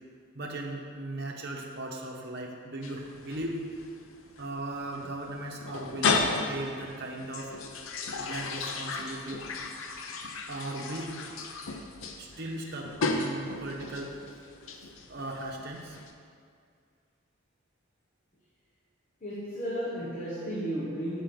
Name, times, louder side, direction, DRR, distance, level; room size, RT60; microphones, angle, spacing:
voice 1, 0.3-3.6 4.4-7.5 8.2-9.4 10.5-11.1 12.2-14.1 15.1-16.0, right 1 dB, 50° right, 0 dB, 1.0 m, -37 dB
sound 1, 2.8-16.1, left 3 dB, 80° left, 0.7 m, -35 dB
voice 2, 19.2-21.2, equal, 35° left, -5 dB, 1.0 m, -33 dB
6.7 x 5.5 x 6.0 m, 2.2 s
head